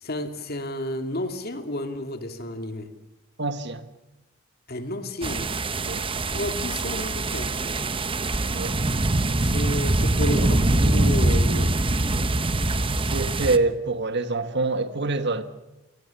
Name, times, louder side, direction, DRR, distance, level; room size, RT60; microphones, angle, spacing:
voice 1, 0.0-2.9 4.7-5.5 6.3-7.5 9.4-11.7, left 1 dB, 50° left, 2.5 m, -31 dB
voice 2, 3.4-3.8 5.8-6.1 8.5-8.8 13.1-15.4, right 3 dB, 55° right, 1.6 m, -25 dB
sound 1, 5.2-13.6, right 2 dB, 25° right, 1.0 m, -23 dB
28.5 x 19.5 x 7.1 m
head